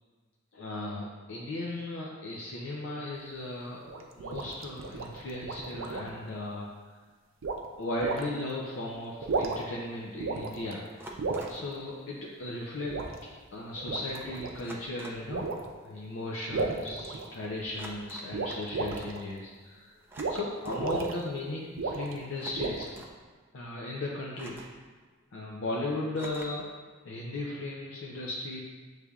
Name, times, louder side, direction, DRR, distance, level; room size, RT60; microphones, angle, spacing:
voice 1, 0.5-6.7 7.8-10.8 11.5-13.0 13.5-15.6 15.8-19.9 20.3-22.9 23.5-24.6 25.3-26.7 27.0-28.6, left 2 dB, 70° left, -3 dB, 0.5 m, -36 dB
sound 1, 3.9-6.2 7.4-7.6 8.0-8.2 9.1-9.8 10.2-10.7 11.2-11.5 12.9-13.1 13.7-14.6 15.3-15.7 16.5-17.6 18.3-19.2 20.2-20.4 20.6-21.1 21.8-22.2 22.5-23.0, right 3 dB, 75° right, 0.5 m, -33 dB
sound 2, 11.0-11.7 13.0-13.1 13.4-13.7 14.6-15.3 17.7-18.4 20.0-20.9 22.3-23.2 24.3-24.9 26.1-26.7, right 1 dB, 10° right, 0.4 m, -47 dB
6.7 x 3.2 x 2.4 m, 1.4 s
head